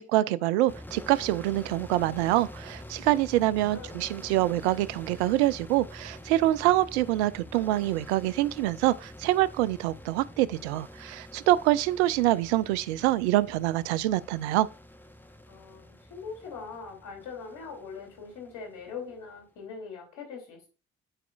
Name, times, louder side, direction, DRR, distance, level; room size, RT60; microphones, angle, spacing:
voice 1, 0.0-14.7, right 15 dB, 80° right, 0.5 m, -25 dB
sound 1, 0.7-19.3, left 1 dB, 5° left, 1.0 m, -47 dB
voice 2, 3.6-4.0 15.5-20.7, left 5 dB, 70° left, 2.9 m, -42 dB
12.0 x 4.8 x 2.4 m
hypercardioid pair, 45°, 33 cm